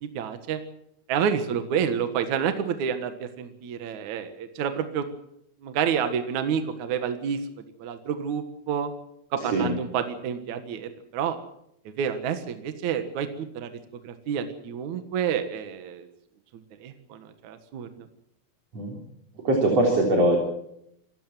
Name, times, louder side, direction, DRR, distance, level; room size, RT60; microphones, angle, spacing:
voice 1, 0.0-0.6 1.1-5.1 5.6-7.4 7.8-8.9 9.3-11.4 11.9-13.8 14.0-16.1 16.8-18.1, right 7 dB, 60° right, 8 dB, 2.7 m, -29 dB
voice 2, 9.4-9.7 18.7-19.0 19.4-20.4, right 1 dB, 45° right, 1 dB, 4.5 m, -21 dB
26.5 x 15.5 x 7.5 m, 0.76 s
omnidirectional pair, 4.2 m